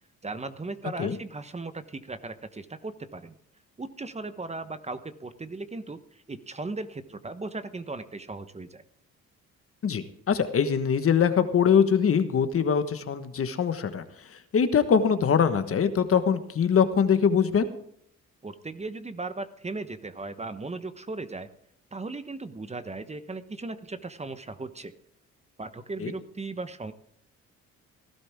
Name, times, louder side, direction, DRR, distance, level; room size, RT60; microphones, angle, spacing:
voice 1, 0.2-3.3 3.8-8.8 18.4-21.5 21.9-24.9 25.6-26.9, right 3 dB, 20° right, 11 dB, 1.1 m, -37 dB
voice 2, 9.8-14.0 14.5-17.7 26.0-26.1, left 7 dB, 50° left, 10 dB, 1.4 m, -23 dB
18.5 x 12.5 x 3.6 m, 0.70 s
cardioid pair, 90°, 30 cm